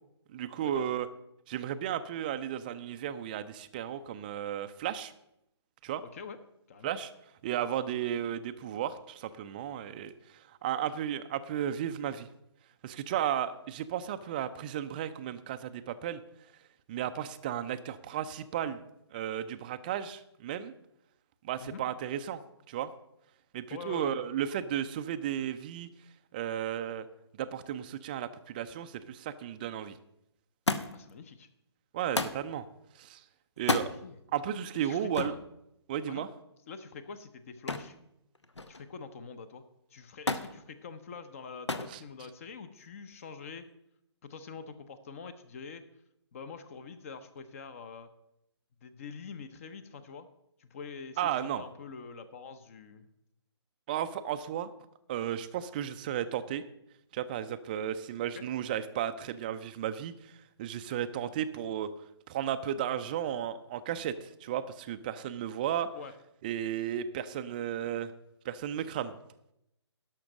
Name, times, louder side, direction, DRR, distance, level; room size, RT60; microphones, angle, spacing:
voice 1, 0.3-1.1 1.5-5.1 5.8-6.0 6.8-7.1 7.4-12.3 12.8-16.2 16.9-18.8 19.1-20.7 21.4-22.4 22.7-22.9 23.5-25.9 26.3-27.1 27.4-30.0 31.9-32.7 33.0-33.2 33.6-33.9 34.3-35.3 35.9-36.3 41.9-42.0 51.2-51.6 53.9-54.7 55.1-56.6 57.1-60.3 60.6-61.9 62.3-65.9 66.4-68.1 68.4-69.1, right 10 dB, 20° right, 11 dB, 0.4 m, -34 dB
voice 2, 23.7-24.1 30.9-31.5 34.0-34.2 34.7-35.4 36.1-36.3 36.7-38.0 38.7-39.6 39.9-43.7 44.2-45.8 46.3-48.1 48.8-50.3 50.6-53.1 58.3-58.4 65.9-66.1, left 5 dB, 30° left, 12 dB, 0.7 m, -45 dB
Thump thud, 30.7-31.1 32.1-32.5 33.6-33.9 35.1-35.4 37.7-38.0 38.3-38.9 40.3-40.5 41.7-42.0 42.9-43.4 44.4-44.5, left 2 dB, 80° left, 0.9 m, -31 dB
12.0 x 5.8 x 6.3 m, 0.81 s
figure-of-eight pair, 140°, 14 cm